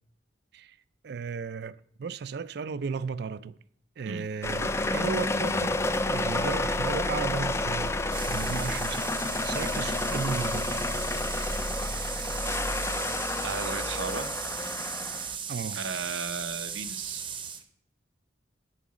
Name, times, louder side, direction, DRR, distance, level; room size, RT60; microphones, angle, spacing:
voice 1, 1.0-3.6 4.0-5.8 6.1-8.0 8.3-9.1 9.4-10.7 15.5-15.8, right 5 dB, 60° right, 0.4 m, -35 dB
sound 1, 4.4-15.3, left 2 dB, 15° left, 0.4 m, -30 dB
sound 2, 8.1-17.6, right 7 dB, 25° right, 0.7 m, -37 dB
voice 2, 13.4-14.3 15.7-17.2, right 5 dB, 85° right, 0.7 m, -35 dB
10.0 x 4.8 x 7.3 m
head